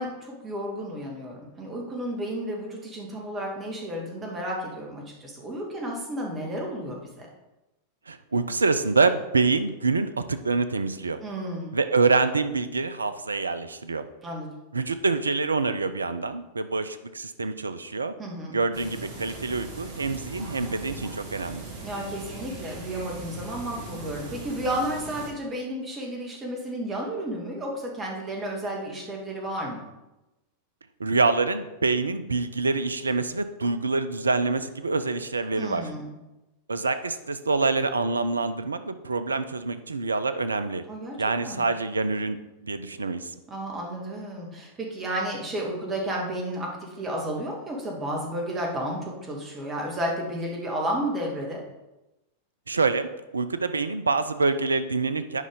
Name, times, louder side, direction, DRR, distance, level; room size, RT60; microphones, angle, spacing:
voice 1, 0.0-7.3 11.2-11.7 14.2-14.5 18.2-18.6 21.8-29.8 35.5-36.1 40.9-41.2 41.4-41.6 43.5-51.6, right 1 dB, 20° right, -1 dB, 2.1 m, -32 dB
voice 2, 8.1-11.2 11.7-14.1 14.7-18.1 18.5-21.7 31.0-35.8 36.7-40.8 41.2-43.3 52.7-53.1 53.3-55.4, right 3 dB, 75° right, 11 dB, 0.5 m, -26 dB
sound 1, 18.7-25.3, right 2 dB, 50° right, 1.8 m, -39 dB
9.2 x 5.4 x 3.8 m, 1.0 s
figure-of-eight pair, 90°, 0 cm